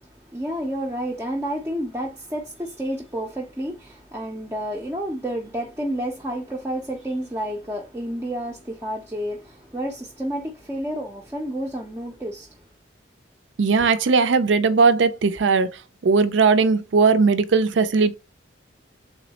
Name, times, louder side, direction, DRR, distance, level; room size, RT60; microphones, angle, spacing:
voice 1, 0.0-12.6, equal, 15° right, 0.4 m, -30 dB
voice 2, 13.6-15.7 16.0-18.2, right 4 dB, 80° right, 0.5 m, -18 dB
3.5 x 3.0 x 2.8 m
head